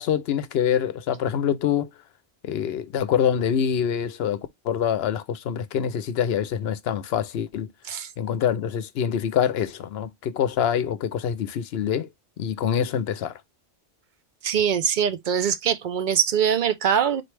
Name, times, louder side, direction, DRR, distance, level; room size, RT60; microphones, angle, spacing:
voice 1, 0.0-1.9 2.4-4.4 4.6-7.7 8.2-12.1 12.4-13.3, left 8 dB, 70° left, 0.8 m, -25 dB
voice 2, 14.4-17.2, right 8 dB, 55° right, 0.6 m, -23 dB
4.3 x 3.1 x 3.2 m
omnidirectional pair, 1.1 m